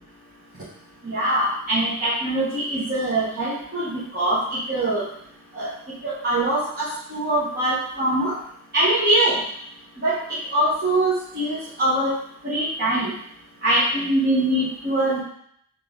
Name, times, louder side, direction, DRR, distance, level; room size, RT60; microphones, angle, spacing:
voice 1, 1.0-5.0 5.5-5.7 6.0-8.4 8.7-9.4 10.0-10.2 10.5-12.1 12.4-13.1 13.6-15.2, right 1 dB, 45° right, -11 dB, 1.2 m, -23 dB
3.8 x 3.5 x 3.8 m, 0.69 s
head